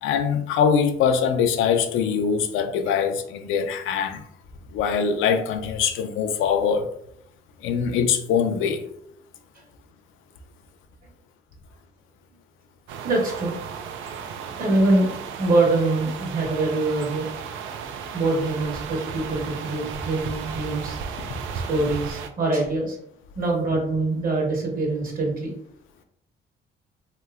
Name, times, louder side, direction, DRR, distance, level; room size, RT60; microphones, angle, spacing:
voice 1, 0.0-4.2 4.7-6.9 7.6-8.8, left 7 dB, 90° left, 0.4 m, -23 dB
sound 1, 12.9-22.3, right 6 dB, 80° right, 0.4 m, -34 dB
voice 2, 13.0-13.6 14.6-17.3 18.1-21.0 21.5-23.0 23.3-25.5, right 2 dB, 45° right, 1.2 m, -24 dB
3.1 x 2.9 x 2.4 m
cardioid pair, 90°, 20 cm